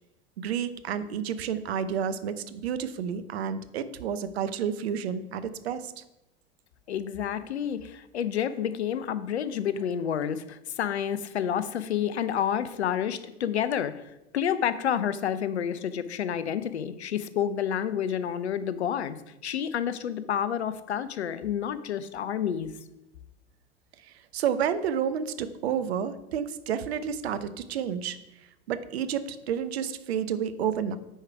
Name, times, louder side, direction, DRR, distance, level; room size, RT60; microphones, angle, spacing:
voice 1, 0.4-5.9 24.3-28.2 28.7-31.0, right 8 dB, 70° right, 12 dB, 0.7 m, -30 dB
voice 2, 6.9-14.0 14.3-19.2 19.4-22.7, left 9 dB, 80° left, 14 dB, 0.6 m, -29 dB
8.9 x 4.8 x 4.6 m, 0.92 s
figure-of-eight pair, 80°, 33 cm